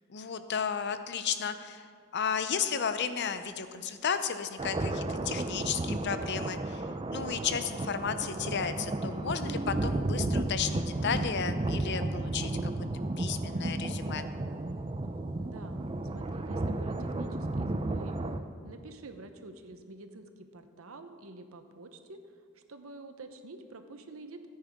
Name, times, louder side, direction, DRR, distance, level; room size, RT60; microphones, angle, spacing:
voice 1, 0.1-1.9 2.1-6.9 7.1-12.7 13.2-14.3, left 7 dB, 55° left, 10 dB, 0.6 m, -33 dB
sound 1, 4.6-18.4, right 2 dB, 25° right, 0.5 m, -33 dB
voice 2, 15.4-15.9 16.1-18.2 18.6-22.2 22.5-24.5, right 2 dB, 85° right, 7 dB, 0.9 m, -48 dB
13.5 x 9.7 x 3.6 m, 2.2 s
head